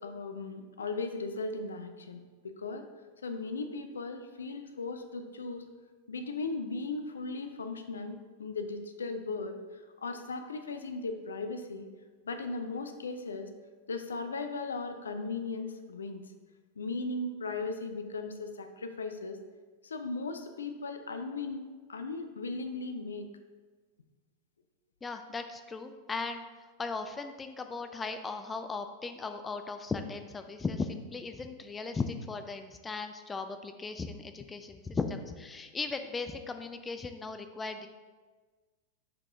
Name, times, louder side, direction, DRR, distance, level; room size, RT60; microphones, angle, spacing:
voice 1, 0.0-2.9 3.2-5.7 6.1-11.9 12.2-13.5 13.9-16.2 16.8-19.4 19.8-23.3, left 3 dB, 70° left, 7 dB, 0.5 m, -37 dB
voice 2, 25.0-26.4 26.8-37.9, left 4 dB, 15° left, 7 dB, 0.4 m, -37 dB
7.0 x 4.8 x 3.5 m, 1.4 s
figure-of-eight pair, 90°, 0 cm